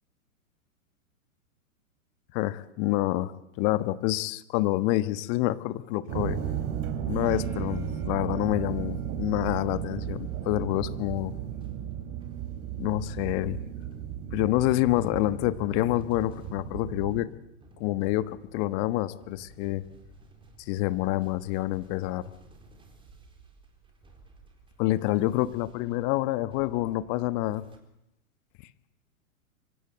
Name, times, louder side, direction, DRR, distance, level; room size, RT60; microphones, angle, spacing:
voice 1, 2.3-3.3 3.6-6.4 7.1-11.3 12.8-13.6 14.3-17.3 17.8-19.8 20.7-22.2 24.8-27.6, left 17 dB, 35° left, 14 dB, 1.3 m, -27 dB
sound 1, 6.1-17.3, right 9 dB, 35° right, 3.3 m, -34 dB
sound 2, 9.1-27.8, right 3 dB, 10° right, 3.9 m, -55 dB
25.0 x 24.0 x 8.0 m, 0.85 s
figure-of-eight pair, 110°, 43 cm